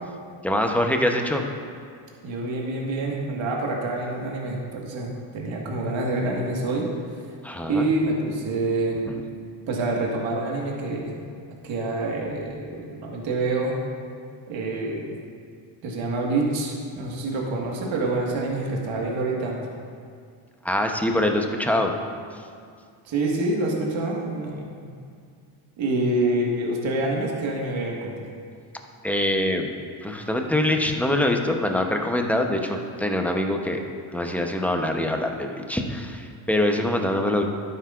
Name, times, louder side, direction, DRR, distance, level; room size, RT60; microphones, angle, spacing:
voice 1, 0.4-1.4 7.4-7.9 20.6-21.9 29.0-33.8 34.1-37.4, left 1 dB, 5° left, 3 dB, 0.8 m, -24 dB
voice 2, 2.2-6.9 7.7-9.0 9.7-11.1 11.6-13.7 14.5-15.1 15.8-19.6 23.1-24.6 25.8-28.3, right 2 dB, 65° right, -2 dB, 1.7 m, -26 dB
12.0 x 9.3 x 2.5 m, 2.2 s
cardioid pair, 85°, 49 cm